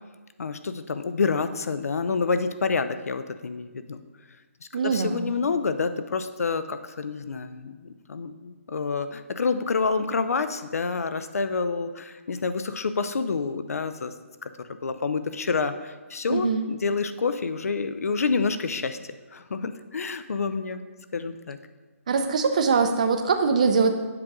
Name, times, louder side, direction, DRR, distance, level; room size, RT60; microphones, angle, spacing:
voice 1, 0.4-4.0 4.8-14.1 14.4-19.0 19.3-20.8 21.1-21.6, left 4 dB, 85° left, 11 dB, 0.6 m, -28 dB
voice 2, 4.7-5.3 16.3-16.6 22.1-23.9, right 5 dB, 30° right, 6 dB, 0.5 m, -22 dB
7.8 x 3.7 x 6.0 m, 1.3 s
hypercardioid pair, 175°, 8 cm